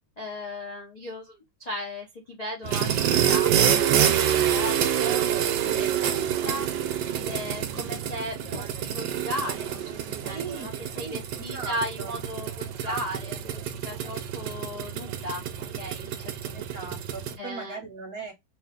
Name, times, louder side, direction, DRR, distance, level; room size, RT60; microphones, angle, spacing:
voice 1, 0.2-5.2 5.7-6.7 7.0-10.7 11.0-15.4 15.8-16.6 17.4-17.8, left 1 dB, 40° left, 0.6 m, -36 dB
sound 1, 2.6-17.4, right 9 dB, 70° right, 1.1 m, -27 dB
voice 2, 10.3-12.1 12.7-13.4 16.5-18.3, right 4 dB, 55° right, 1.2 m, -40 dB
3.1 x 2.7 x 3.5 m
omnidirectional pair, 2.2 m